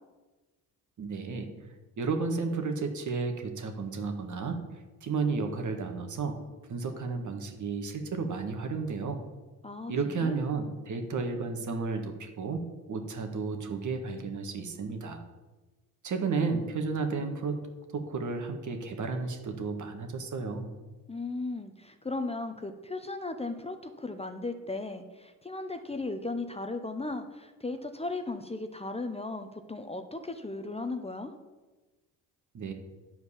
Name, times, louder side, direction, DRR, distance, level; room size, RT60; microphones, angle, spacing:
voice 1, 1.0-1.5 2.0-4.6 5.0-6.4 6.7-9.2 9.9-12.6 12.9-15.2 16.0-17.6 17.9-20.7 32.5-32.7, right 4 dB, 50° right, 5 dB, 1.7 m, -32 dB
voice 2, 9.6-10.3 21.1-31.3, left 2 dB, 15° left, 7 dB, 0.8 m, -36 dB
10.0 x 4.6 x 7.1 m, 1.2 s
supercardioid pair, 70°, 37 cm